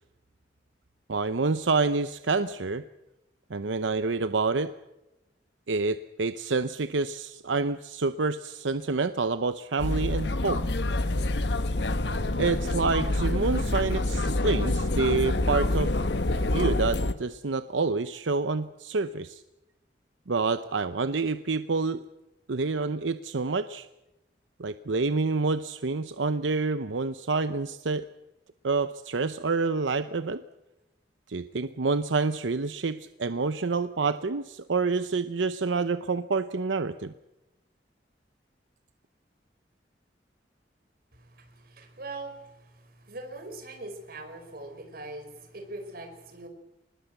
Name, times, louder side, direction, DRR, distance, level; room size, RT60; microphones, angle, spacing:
voice 1, 1.1-2.8 3.5-4.7 5.7-10.7 12.4-15.9 16.5-19.4 20.3-22.0 22.5-23.9 24.6-28.0 28.6-30.4 31.3-37.1, right 4 dB, 85° right, 11 dB, 0.8 m, -28 dB
sound 1, 9.8-17.1, left 2 dB, 65° left, 1.2 m, -27 dB
voice 2, 41.1-46.5, right 2 dB, 55° right, 5 dB, 4.9 m, -42 dB
24.5 x 20.5 x 8.2 m, 0.96 s
head